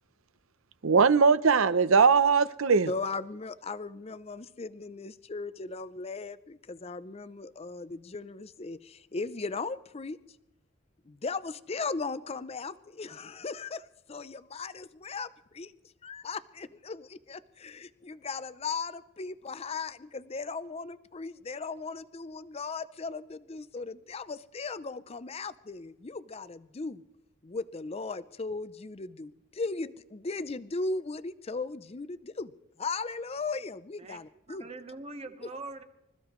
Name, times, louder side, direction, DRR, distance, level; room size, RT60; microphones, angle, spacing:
voice 1, 0.8-2.9, right 5 dB, 70° right, 15 dB, 0.7 m, -21 dB
voice 2, 2.9-10.2 11.1-15.7 16.0-27.0 27.4-32.5 32.8-34.7 35.4-35.5, left 4 dB, 30° left, 15 dB, 0.5 m, -37 dB
voice 3, 34.5-35.8, right 3 dB, 30° right, 7 dB, 1.1 m, -42 dB
25.5 x 14.5 x 3.1 m, 0.90 s
head